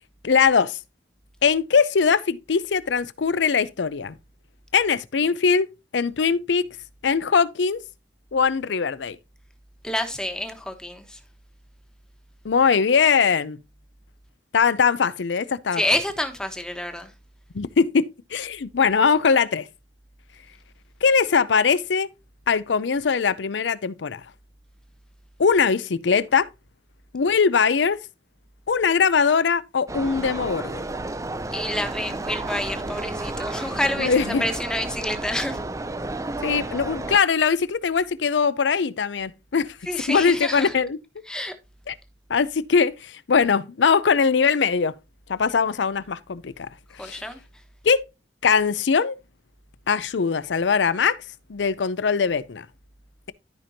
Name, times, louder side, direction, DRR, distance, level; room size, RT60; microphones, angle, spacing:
voice 1, 0.2-0.8 1.4-4.2 4.7-5.7 5.9-6.6 7.0-7.8 8.3-9.2 12.4-13.6 14.5-15.8 17.5-18.1 18.3-19.7 21.0-22.1 22.5-24.2 25.4-26.5 27.1-28.0 28.7-30.8 34.0-34.4 36.4-39.8 40.1-41.0 41.9-42.0 42.3-44.9 45.3-46.7 47.0-47.2 47.8-48.0 48.4-49.2 49.9-51.2 51.5-52.7, left 5 dB, 90° left, 0.5 m, -21 dB
voice 2, 9.8-11.2 15.7-17.1 31.5-35.6 39.9-40.7 41.3-41.5 47.0-47.4, left 1 dB, 5° left, 1.1 m, -28 dB
sound 1, 29.9-37.2, right 2 dB, 20° right, 0.5 m, -32 dB
13.0 x 5.2 x 2.8 m
head